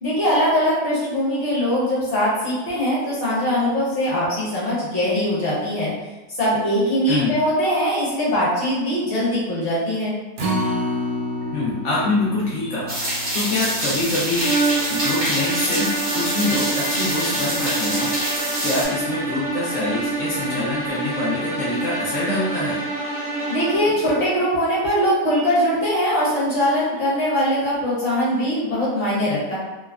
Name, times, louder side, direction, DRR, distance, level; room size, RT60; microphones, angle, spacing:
voice 1, 0.0-5.9 6.4-10.1 23.5-29.6, equal, 45° left, -8 dB, 0.9 m, -21 dB
Acoustic guitar, 10.4-16.7 17.1-17.2 17.6-17.7, left 1 dB, 65° right, 0.9 m, -30 dB
voice 2, 11.5-13.0 13.3-14.5 14.9-18.1 18.6-22.8, left 2 dB, 75° left, -6 dB, 0.6 m, -25 dB
sound 1, 12.9-18.8, right 1 dB, 40° right, 0.4 m, -26 dB
sound 2, 14.3-24.0, right 2 dB, 25° left, 0.4 m, -26 dB
3.2 x 2.0 x 2.3 m, 1.1 s
omnidirectional pair, 1.8 m